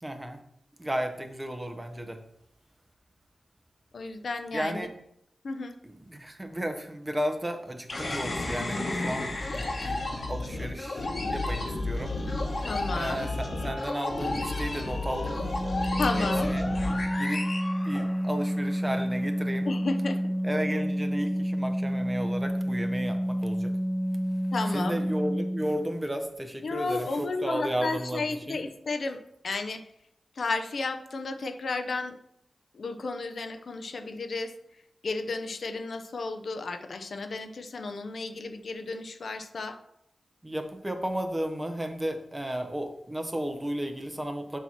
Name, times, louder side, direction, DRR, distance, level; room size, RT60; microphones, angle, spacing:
voice 1, 0.0-0.4 0.8-2.2 4.5-4.9 6.1-10.0 10.3-12.1 12.9-15.4 16.2-16.6 17.1-17.5 17.8-19.7 20.4-23.7 24.7-28.6 40.4-44.6, equal, 15° right, 6 dB, 0.9 m, -33 dB
voice 2, 3.9-4.9 5.4-5.8 12.6-13.3 16.0-16.5 19.6-20.2 24.5-25.0 26.6-29.2 29.4-29.8 30.4-32.2 32.7-34.5 35.0-39.8, left 3 dB, 70° left, 8 dB, 0.5 m, -32 dB
sound 1, 7.9-18.5, left 2 dB, 50° left, 1.0 m, -32 dB
Organ, 15.4-26.0, equal, ahead, 0.3 m, -29 dB
7.0 x 2.9 x 5.8 m, 0.75 s
wide cardioid pair, 75°, 0 cm